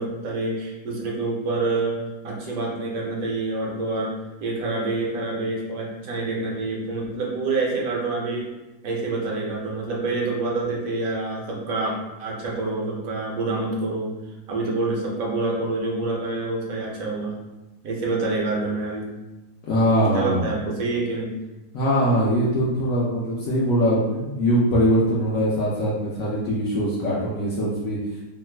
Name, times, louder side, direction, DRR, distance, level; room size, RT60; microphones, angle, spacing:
voice 1, 0.0-2.0 2.2-4.2 4.4-8.5 8.8-14.1 14.5-17.4 17.8-19.1 20.1-21.3, right 3 dB, 65° right, -2 dB, 1.0 m, -27 dB
voice 2, 19.6-20.5 21.7-28.0, equal, 65° left, -7 dB, 0.9 m, -22 dB
3.0 x 2.1 x 3.2 m, 1.0 s
omnidirectional pair, 1.8 m